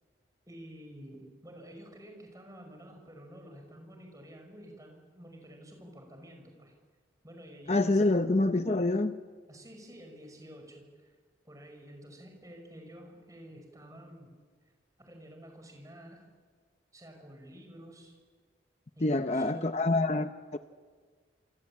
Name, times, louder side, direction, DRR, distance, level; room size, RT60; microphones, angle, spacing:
voice 1, 0.5-6.7 7.2-8.1 9.5-11.2 11.4-14.3 15.0-16.2 16.9-18.1 19.0-19.9, equal, 20° right, 3 dB, 5.7 m, -50 dB
voice 2, 7.7-9.1 19.0-20.6, left 2 dB, 35° left, 9 dB, 0.8 m, -26 dB
26.5 x 26.0 x 8.7 m, 1.5 s
head